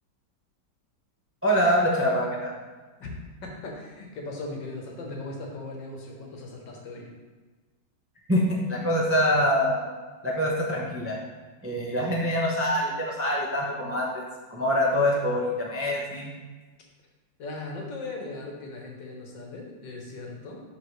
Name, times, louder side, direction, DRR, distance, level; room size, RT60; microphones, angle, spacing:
voice 1, 1.4-2.5 8.3-9.8 10.2-11.2 11.6-14.2 14.5-16.3, equal, 15° right, -3 dB, 0.4 m, -25 dB
voice 2, 3.4-7.1 17.4-20.6, left 2 dB, 75° left, 0 dB, 1.8 m, -38 dB
11.0 x 3.8 x 3.2 m, 1.3 s
omnidirectional pair, 2.0 m